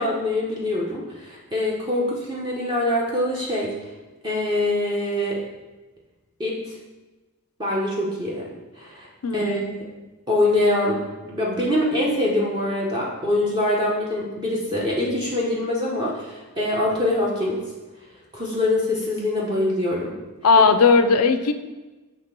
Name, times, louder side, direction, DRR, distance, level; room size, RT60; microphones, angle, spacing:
voice 1, 0.0-3.7 4.2-5.4 6.4-6.6 7.6-8.5 8.8-9.9 10.3-11.0 11.3-17.6 18.3-20.1, left 1 dB, 20° right, -5 dB, 1.0 m, -24 dB
voice 2, 9.2-9.8 20.4-21.5, left 4 dB, 75° left, 8 dB, 0.5 m, -17 dB
7.4 x 3.3 x 5.9 m, 1.2 s
head